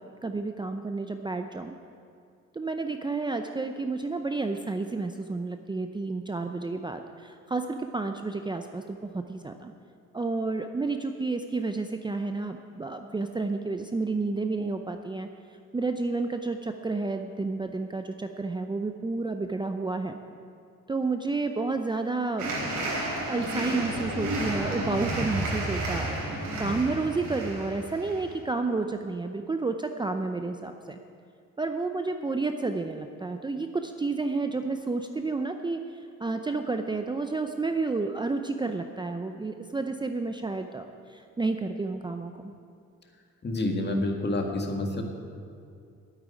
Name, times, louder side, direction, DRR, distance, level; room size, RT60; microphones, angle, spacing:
voice 1, 0.0-1.7 2.5-9.7 10.1-15.3 15.7-20.2 20.9-31.0 31.6-42.5, right 3 dB, 15° right, 6 dB, 0.6 m, -31 dB
sound 1, 22.4-28.3, right 1 dB, 80° right, 3.9 m, -31 dB
voice 2, 43.4-45.0, left 2 dB, 35° left, 2 dB, 1.9 m, -28 dB
9.0 x 8.7 x 9.6 m, 2.4 s
cardioid pair, 90°, 30 cm